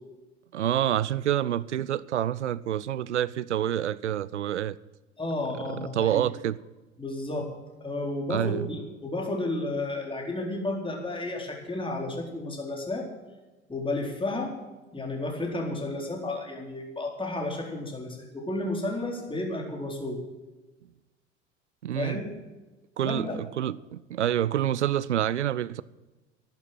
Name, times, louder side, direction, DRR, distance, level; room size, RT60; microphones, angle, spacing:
voice 1, 0.5-4.8 5.5-6.6 8.3-8.7 21.8-22.2 23.0-25.8, right 11 dB, 80° right, 0.6 m, -27 dB
voice 2, 5.2-6.2 7.0-7.5 7.8-13.1 13.7-14.5 14.9-20.2 21.9-22.4 23.0-23.4, left 2 dB, 15° left, 4.2 m, -32 dB
12.0 x 11.5 x 7.5 m
figure-of-eight pair, 70°, 34 cm